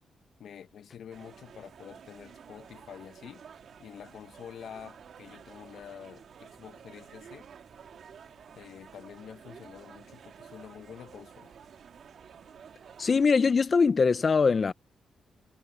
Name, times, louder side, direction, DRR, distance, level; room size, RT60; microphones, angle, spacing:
voice 1, 0.4-3.4 3.8-7.5 8.5-11.6, left 8 dB, 75° left, 1.6 m, -47 dB
sound 1, 1.1-13.3, right 7 dB, 70° right, 2.4 m, -51 dB
voice 2, 13.0-14.7, left 5 dB, 50° left, 1.0 m, -22 dB
supercardioid pair, 55°, 0 cm